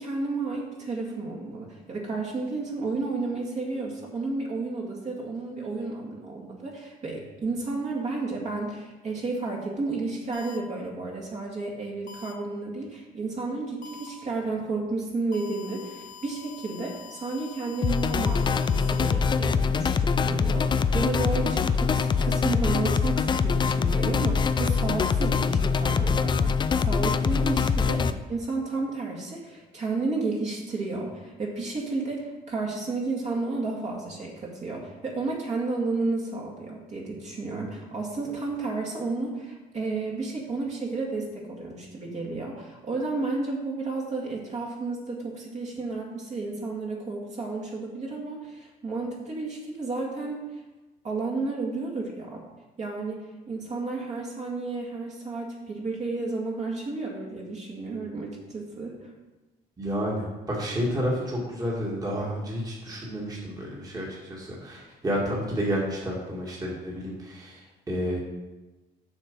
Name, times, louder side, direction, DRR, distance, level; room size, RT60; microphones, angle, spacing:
voice 1, 0.0-50.4 51.0-52.4 52.8-59.1, right 3 dB, 45° right, -2 dB, 2.2 m, -32 dB
sound 1, 10.3-10.6 12.1-12.3 13.8-14.1 15.3-19.1, left 6 dB, 50° left, 1.1 m, -45 dB
sound 2, 17.8-28.1, left 5 dB, 25° left, 0.4 m, -24 dB
voice 2, 59.8-68.2, equal, 20° right, -4 dB, 2.0 m, -30 dB
7.1 x 6.2 x 5.4 m, 1.1 s
cardioid pair, 110°, 17 cm